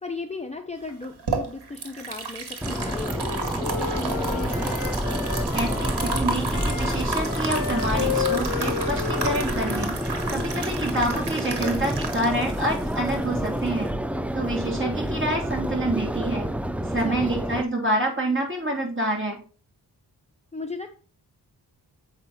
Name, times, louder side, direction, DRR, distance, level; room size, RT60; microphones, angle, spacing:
voice 1, 0.0-4.8 17.0-17.6 20.5-20.9, left 3 dB, 15° left, 4 dB, 0.8 m, -36 dB
sound 1, 0.9-13.9, right 4 dB, 70° right, 2.0 m, -32 dB
Wind instrument woodwind instrument, 2.6-10.6, left 8 dB, 55° left, 0.8 m, -33 dB
Subway metro underground, 2.6-17.6, equal, 5° right, 0.3 m, -28 dB
voice 2, 5.5-10.0 10.3-13.9 14.3-16.5 16.9-19.4, right 1 dB, 30° right, -1 dB, 3.5 m, -27 dB
8.0 x 5.3 x 4.2 m, 0.39 s
wide cardioid pair, 75°, 41 cm